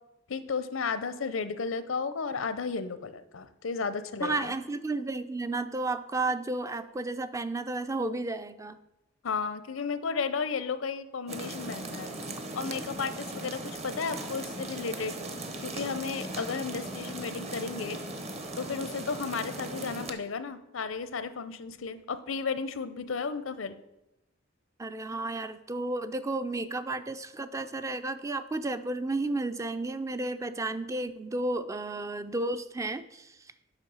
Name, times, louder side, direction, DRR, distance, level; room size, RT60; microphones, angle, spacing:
voice 1, 0.3-4.5 9.2-12.1 12.5-15.1 15.6-18.0 18.6-23.8, left 5 dB, 85° left, 13 dB, 0.6 m, -33 dB
voice 2, 4.2-8.8 24.8-33.4, right 2 dB, 15° right, 11 dB, 0.3 m, -32 dB
sound 1, 11.3-20.1, right 2 dB, 35° right, 0.8 m, -38 dB
7.4 x 5.6 x 6.2 m, 0.91 s
head